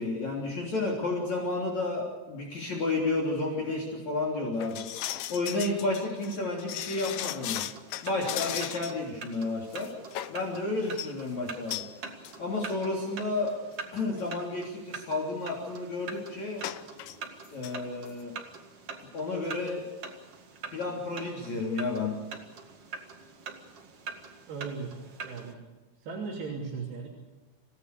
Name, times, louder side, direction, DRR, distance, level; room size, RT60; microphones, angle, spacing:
voice 1, 0.0-4.9 5.3-7.6 8.0-9.9 10.3-11.8 12.4-13.5 13.9-16.6 17.5-18.3 19.1-19.8 20.7-22.2, left 2 dB, 45° left, 0 dB, 4.4 m, -31 dB
sound 1, 4.6-9.0 9.3-9.4 9.7-10.4 10.8-11.1 11.7-11.9 12.2-12.4 12.6-12.7 13.5-13.6 14.0-14.2 16.6-17.2 17.4-17.7 18.1-18.2, left 13 dB, 75° left, 2.3 m, -36 dB
sound 2, 7.5-25.5, right 5 dB, 45° right, 2.5 m, -45 dB
voice 2, 24.5-24.9 25.2-25.6 26.0-27.1, right 5 dB, 75° right, -2 dB, 5.1 m, -37 dB
29.0 x 17.5 x 6.8 m, 1.2 s
omnidirectional pair, 4.7 m